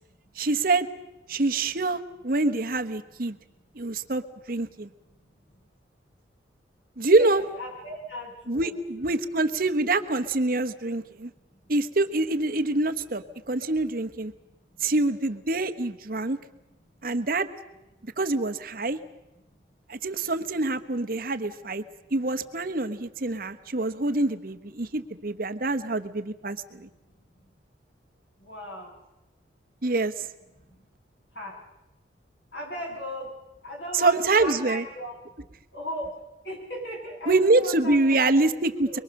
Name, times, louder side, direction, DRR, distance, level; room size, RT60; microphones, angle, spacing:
voice 1, 0.4-0.9 1.3-3.4 3.7-4.2 4.5-4.9 7.0-7.4 8.5-11.3 11.7-14.3 14.8-16.4 17.0-17.5 18.2-19.0 19.9-21.8 22.1-26.9 29.8-30.3 34.0-34.8 37.3-39.0, right 2 dB, 55° right, 10 dB, 1.1 m, -25 dB
voice 2, 3.5-4.0 4.7-5.7 7.0-9.1 11.2-11.6 13.5-13.6 14.3-14.9 16.9-17.1 19.5-19.6 23.5-23.6 24.8-24.9 26.7-26.8 27.2-27.5 28.4-28.9 30.6-30.9 31.3-31.6 32.5-33.3 33.6-35.5 35.7-36.2 36.4-38.5 38.8-39.0, equal, 75° left, -1 dB, 7.7 m, -39 dB
23.5 x 23.0 x 6.5 m, 0.99 s
head